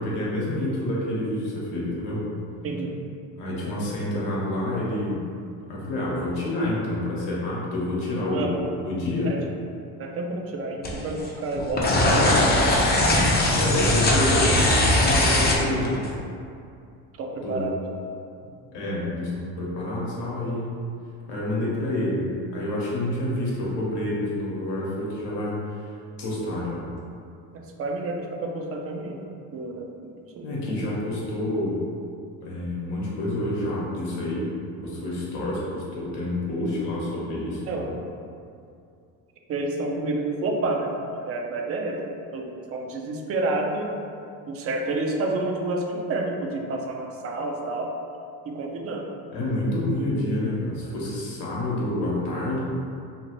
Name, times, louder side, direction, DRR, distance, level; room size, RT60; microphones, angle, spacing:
voice 1, 0.0-2.2 3.4-5.2 5.7-9.3 13.5-16.1 17.4-17.8 18.7-20.8 21.3-25.8 26.2-26.8 30.4-31.8 32.4-34.5 34.8-37.9 49.3-52.6, left 1 dB, 75° left, -6 dB, 1.0 m, -28 dB
voice 2, 2.6-3.0 8.3-8.6 9.3-9.4 10.0-13.3 17.2-17.7 27.5-29.2 29.5-29.9 30.4-30.5 37.7-37.9 39.5-43.9 44.5-47.9 48.5-49.1, right 2 dB, 35° right, 1 dB, 0.5 m, -29 dB
sound 1, 10.8-11.3 11.5-16.1, left 1 dB, 25° left, 0.5 m, -20 dB
2.8 x 2.5 x 2.9 m, 2.5 s
supercardioid pair, 80°, 42 cm